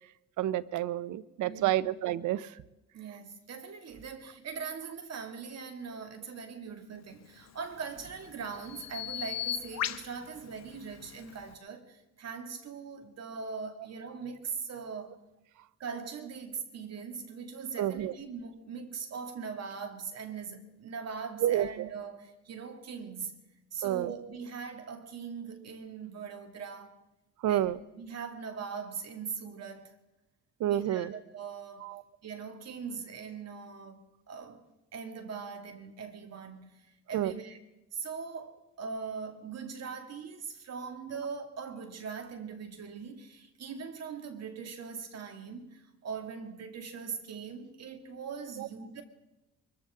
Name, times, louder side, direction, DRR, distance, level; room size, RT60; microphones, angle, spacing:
voice 1, 0.4-2.5 17.8-18.1 21.4-21.9 23.8-24.1 27.4-27.8 30.6-31.2 31.8-32.0 37.1-37.3 48.6-48.7, right 12 dB, 80° right, 0.7 m, -29 dB
voice 2, 1.5-1.9 2.9-15.2 15.8-23.4 23.7-26.9 27.5-30.0 30.7-31.9 32.2-34.7 34.9-37.6 37.9-49.0, right 6 dB, 55° right, 2.3 m, -41 dB
Bird vocalization bird call bird song, 7.3-11.5, left 11 dB, 60° left, 0.9 m, -39 dB
23.5 x 14.0 x 3.7 m
cardioid pair, 90°, 30 cm